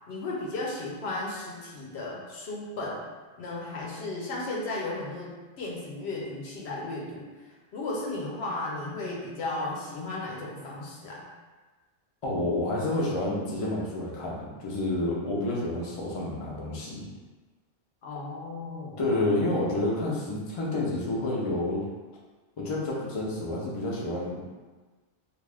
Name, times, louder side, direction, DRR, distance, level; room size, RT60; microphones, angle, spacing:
voice 1, 0.1-3.0 3.4-7.3 7.7-11.3 18.0-19.0, left 2 dB, 90° left, -3 dB, 0.9 m, -35 dB
voice 2, 12.2-17.0 19.0-21.8 22.6-24.5, left 2 dB, 40° left, -5 dB, 0.6 m, -29 dB
2.5 x 2.4 x 3.3 m, 1.3 s
omnidirectional pair, 1.0 m